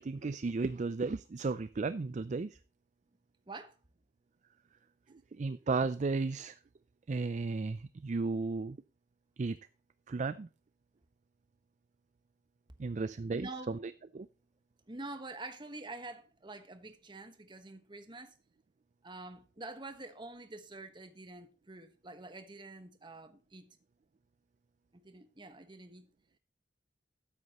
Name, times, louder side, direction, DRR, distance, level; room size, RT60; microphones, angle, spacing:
voice 1, 0.0-2.6 5.1-6.6 7.1-8.8 9.4-9.6 10.1-10.5 12.8-14.3, right 3 dB, 40° right, 0.4 m, -34 dB
voice 2, 13.3-13.8 14.9-18.3 19.0-23.8 24.9-26.1, right 2 dB, 25° right, 1.3 m, -47 dB
13.0 x 9.6 x 3.0 m
head